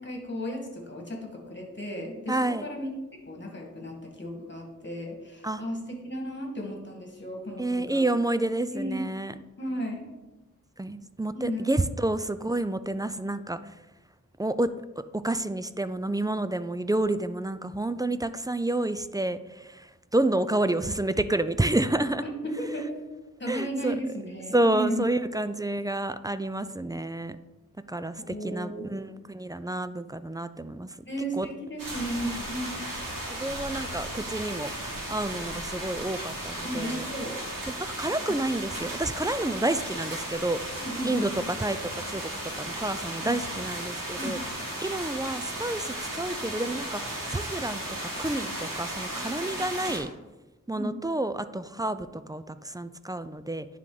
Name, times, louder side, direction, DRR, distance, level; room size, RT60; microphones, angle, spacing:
voice 1, 0.0-2.9 3.3-8.0 8.7-9.1 9.6-10.0 11.3-11.7 22.2-23.0 23.4-25.1 28.3-28.9 31.1-32.7 36.6-37.4 38.3-38.4 40.8-41.5 43.2-43.4 44.2-44.4 49.1-50.0 50.8-51.0, equal, 35° left, 1 dB, 1.8 m, -34 dB
voice 2, 2.3-2.6 5.4-5.6 7.6-9.3 10.8-13.7 14.4-14.7 15.1-22.2 23.5-24.0 24.5-27.4 27.9-30.9 31.4-31.5 32.2-32.4 33.3-34.7 35.1-37.1 38.0-42.2 42.6-44.4 44.8-50.1 50.7-53.7, right 2 dB, 10° right, 13 dB, 0.3 m, -29 dB
sound 1, 31.8-50.0, right 1 dB, 85° right, 1.8 m, -35 dB
10.0 x 3.7 x 3.9 m, 1.1 s
wide cardioid pair, 50°, 32 cm